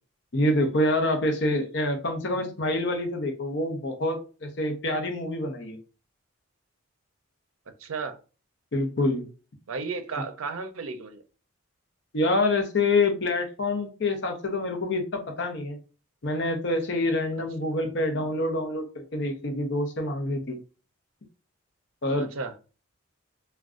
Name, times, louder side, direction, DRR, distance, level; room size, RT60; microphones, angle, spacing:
voice 1, 0.3-5.8 8.7-9.3 12.1-15.8 16.2-20.6 22.0-22.3, left 2 dB, 55° left, 5 dB, 0.7 m, -26 dB
voice 2, 7.8-8.2 9.7-11.2 22.3-22.5, right 4 dB, 80° right, 8 dB, 0.5 m, -33 dB
2.4 x 2.2 x 3.6 m, 0.35 s
head